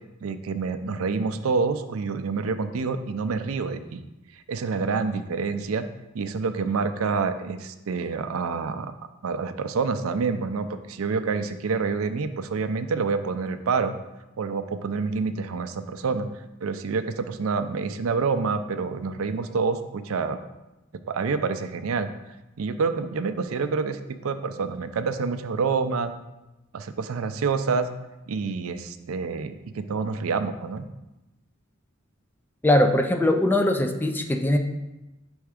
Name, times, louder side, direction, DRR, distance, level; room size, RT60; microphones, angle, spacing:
voice 1, 0.2-4.0 4.5-5.9 6.1-8.9 9.2-13.9 14.4-16.3 16.6-20.4 21.1-22.1 22.6-26.1 26.7-27.9 28.3-30.9, right 4 dB, 85° right, 10 dB, 0.4 m, -27 dB
voice 2, 32.6-34.6, left 1 dB, 10° left, 5 dB, 0.4 m, -21 dB
5.5 x 3.5 x 4.9 m, 1.0 s
head